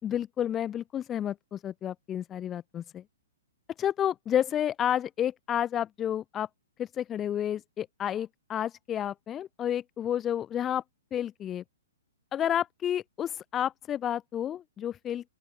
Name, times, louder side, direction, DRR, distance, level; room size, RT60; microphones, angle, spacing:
voice 1, 0.0-3.0 3.8-6.5 6.8-10.8 11.1-11.6 12.3-15.3, left 10 dB, 15° left, 3.0 m, -30 dB
open air
hypercardioid pair, 155°, 0 cm